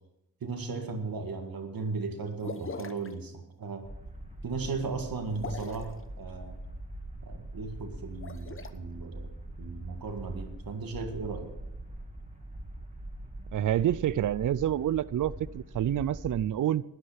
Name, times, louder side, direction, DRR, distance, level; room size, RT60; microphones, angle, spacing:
voice 1, 0.4-3.9 4.4-6.6 7.2-9.3 9.6-11.6, right 4 dB, 80° right, 5 dB, 1.9 m, -36 dB
sound 1, 2.4-3.1 5.3-5.9 8.1-8.7, left 4 dB, 35° left, 1.0 m, -40 dB
sound 2, 3.8-16.4, right 1 dB, 20° right, 2.2 m, -43 dB
voice 2, 13.5-16.8, right 11 dB, 60° right, 20 dB, 0.5 m, -28 dB
13.0 x 9.8 x 5.8 m, 0.88 s
cardioid pair, 65°, 35 cm